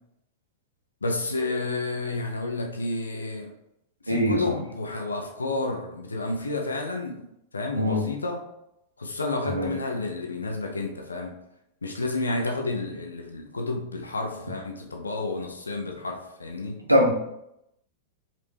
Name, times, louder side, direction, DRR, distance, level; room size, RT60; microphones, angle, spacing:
voice 1, 1.0-3.5 4.0-7.2 7.5-8.4 9.0-11.3 11.8-16.8, left 2 dB, 75° left, 2 dB, 0.7 m, -30 dB
voice 2, 4.1-4.5 7.7-8.1 9.4-9.7 16.9-17.2, equal, 85° right, 0 dB, 1.0 m, -22 dB
5.0 x 3.3 x 3.2 m, 0.81 s
figure-of-eight pair, 95°, 0 cm